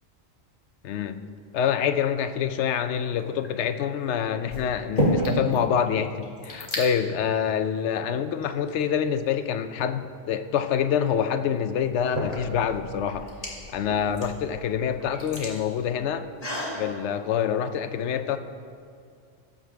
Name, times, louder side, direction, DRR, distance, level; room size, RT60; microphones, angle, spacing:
voice 1, 0.8-1.2 1.5-13.3 13.7-16.3 16.8-18.4, left 8 dB, 80° left, 10 dB, 0.9 m, -26 dB
sound 1, 3.3-3.7 4.5-5.6 5.9-6.0 6.2-6.9 7.7-7.8 8.4-9.3 11.0-11.1 11.8-16.8, equal, 35° left, 1.9 m, -31 dB
17.5 x 7.5 x 3.4 m, 2.3 s
omnidirectional pair, 1.2 m